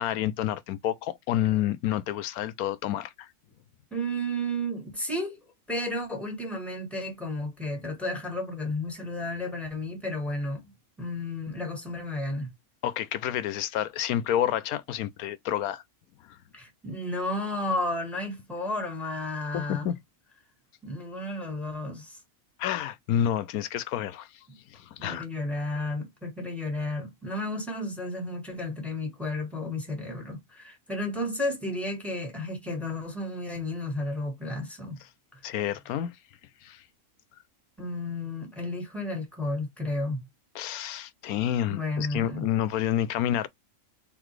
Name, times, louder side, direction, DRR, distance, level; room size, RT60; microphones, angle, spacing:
voice 1, 0.0-3.1 12.8-15.8 19.5-19.9 22.6-24.3 24.7-25.2 35.4-36.1 36.6-36.8 40.5-43.5, left 11 dB, 80° left, 1.1 m, -29 dB
voice 2, 3.9-5.4 5.7-10.7 11.0-12.5 16.5-19.9 20.8-22.2 24.5-24.6 25.0-35.0 37.8-40.3 41.7-42.4, left 1 dB, ahead, 1.6 m, -32 dB
3.9 x 3.8 x 3.1 m
omnidirectional pair, 1.5 m